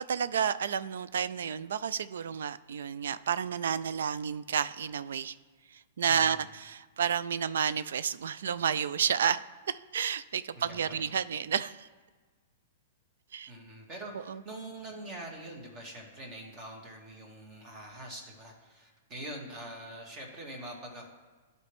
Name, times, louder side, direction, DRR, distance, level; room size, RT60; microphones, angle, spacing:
voice 1, 0.0-5.3 6.0-9.4 9.7-11.9 13.3-13.5 14.3-14.4, right 7 dB, 75° right, 16 dB, 0.3 m, -31 dB
voice 2, 6.1-6.5 10.5-11.1 13.5-21.1, right 1 dB, 35° right, 0 dB, 2.0 m, -44 dB
11.5 x 4.3 x 3.5 m, 1.4 s
hypercardioid pair, 125°, 0 cm